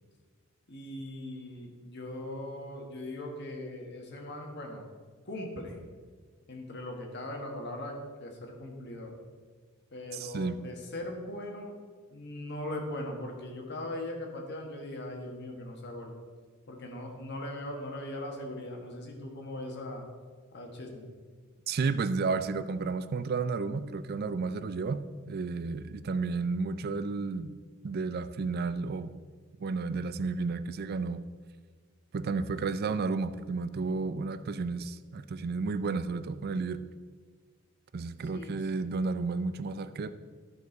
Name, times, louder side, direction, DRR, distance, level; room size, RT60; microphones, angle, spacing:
voice 1, 0.7-4.8 5.3-5.8 6.5-9.1 9.9-11.7 12.1-16.1 16.7-20.1 20.5-21.1 38.2-38.9, left 1 dB, 55° left, 1 dB, 1.5 m, -40 dB
voice 2, 10.1-10.6 21.7-25.0 25.3-27.5 27.8-29.1 29.6-31.2 32.1-36.8 37.9-40.1, right 4 dB, 45° right, 13 dB, 0.4 m, -32 dB
13.5 x 5.3 x 3.9 m, 1.5 s
head